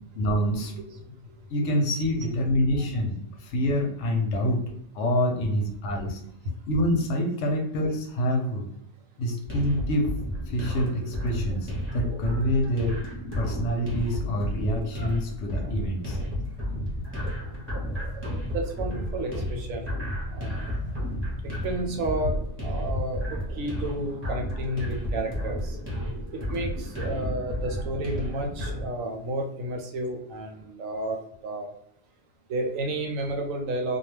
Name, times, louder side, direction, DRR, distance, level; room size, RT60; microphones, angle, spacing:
voice 1, 0.2-0.7 1.5-4.6 4.9-6.2 6.7-8.7 9.2-10.1 10.5-13.0 13.3-16.2, equal, 70° left, 3 dB, 0.9 m, -26 dB
voice 2, 2.2-3.0 17.8-19.9 20.3-20.7 21.4-23.2 23.6-25.8 26.5-31.2 31.4-31.7 32.5-34.0, right 1 dB, 85° right, 2 dB, 1.0 m, -32 dB
sound 1, 9.4-28.8, equal, 10° right, 0.7 m, -32 dB
2.3 x 2.2 x 3.2 m, 0.75 s
omnidirectional pair, 1.3 m